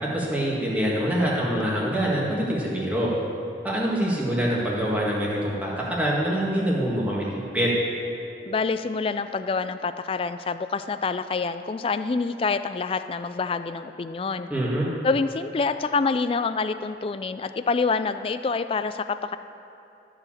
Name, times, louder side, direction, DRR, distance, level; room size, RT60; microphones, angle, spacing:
voice 1, 0.0-3.1 3.6-7.7 14.5-14.9, equal, 10° right, -5 dB, 1.7 m, -25 dB
voice 2, 8.5-14.5 15.0-19.4, left 4 dB, 30° left, 11 dB, 0.3 m, -26 dB
13.5 x 5.0 x 7.2 m, 2.9 s
head